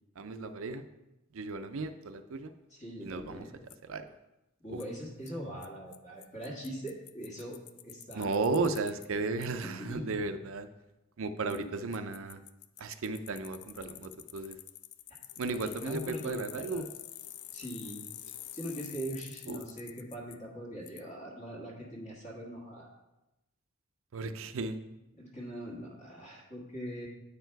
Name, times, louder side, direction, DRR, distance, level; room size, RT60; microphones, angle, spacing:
voice 1, 0.2-0.8 1.3-2.5 3.0-3.5 3.8-4.0 4.7-4.8 8.1-10.7 11.2-12.4 12.8-14.6 15.4-16.9 19.5-19.6 24.1-24.8, right 3 dB, 65° right, 10 dB, 0.5 m, -34 dB
voice 2, 2.7-3.5 4.6-8.3 9.6-10.1 11.5-11.6 15.6-16.8 17.5-18.0 18.5-22.9 25.2-27.1, equal, 35° left, -3 dB, 1.5 m, -42 dB
Bicycle, 3.7-3.8 4.8-4.9 5.3-5.4 5.6-5.7 5.9-6.0 6.2-9.1 9.4-9.5 11.5-11.6 11.9-20.4 20.9-21.0, left 13 dB, 85° left, 0.4 m, -47 dB
8.7 x 4.5 x 4.6 m, 0.95 s
head